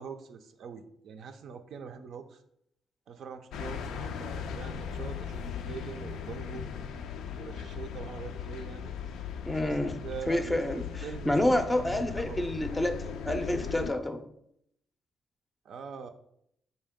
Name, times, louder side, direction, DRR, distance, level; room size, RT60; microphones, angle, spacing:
voice 1, 0.0-2.4 3.1-6.6 7.3-8.9 9.6-9.8 10.0-10.6 11.0-11.4 12.1-12.4 12.7-12.9 15.6-16.1, right 6 dB, 70° right, 7 dB, 0.4 m, -43 dB
sound 1, 3.5-13.9, left 7 dB, 85° left, 0.3 m, -38 dB
voice 2, 9.5-10.0 10.3-10.8 11.3-13.0 13.2-14.2, left 1 dB, 10° left, 7 dB, 0.4 m, -28 dB
4.5 x 2.7 x 3.5 m, 0.74 s
cardioid pair, 90°, 0 cm